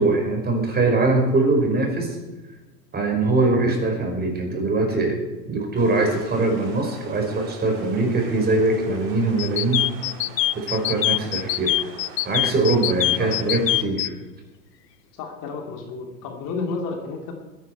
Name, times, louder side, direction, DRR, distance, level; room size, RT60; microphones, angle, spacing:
voice 1, 0.0-2.2 2.9-5.2 5.5-9.9 10.5-11.7 12.2-14.1, right 2 dB, 20° right, 2 dB, 5.0 m, -22 dB
sound 1, 5.8-13.8, right 5 dB, 45° right, 3.5 m, -43 dB
sound 2, 9.4-14.1, left 15 dB, 75° left, 0.6 m, -23 dB
voice 2, 15.1-17.3, left 4 dB, 40° left, 2 dB, 2.6 m, -31 dB
22.0 x 10.5 x 4.6 m, 1.1 s
hypercardioid pair, 95°, 50 cm